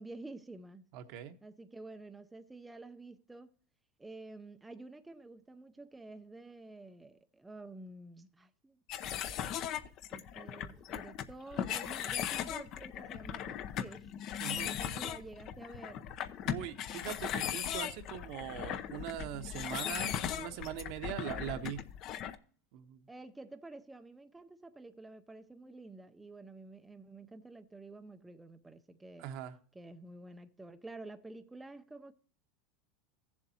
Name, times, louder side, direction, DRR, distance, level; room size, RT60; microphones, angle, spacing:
voice 1, 0.0-0.9 1.4-3.5 4.0-8.8 9.3-9.6 10.1-14.1 14.6-16.0 23.1-29.3 29.7-32.1, right 2 dB, 10° right, 0.5 m, -50 dB
voice 2, 0.9-1.4 14.4-14.7 16.4-21.8 22.7-23.0 29.2-29.6, right 11 dB, 60° right, 1.0 m, -41 dB
sound 1, 8.9-22.4, left 10 dB, 45° left, 0.7 m, -38 dB
15.5 x 7.3 x 2.8 m
supercardioid pair, 125°, 0 cm